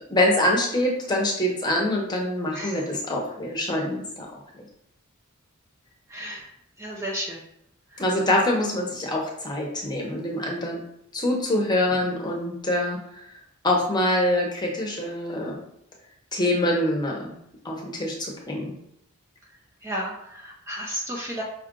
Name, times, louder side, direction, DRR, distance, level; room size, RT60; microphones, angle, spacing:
voice 1, 0.1-4.6 8.0-10.8 11.1-13.3 13.6-15.6 16.3-17.3 17.6-18.7, left 1 dB, 20° left, -1 dB, 0.9 m, -25 dB
voice 2, 6.1-6.5 6.8-7.4 7.9-8.0 19.8-21.4, equal, 15° right, -3 dB, 0.6 m, -33 dB
5.4 x 2.5 x 3.7 m, 0.77 s
head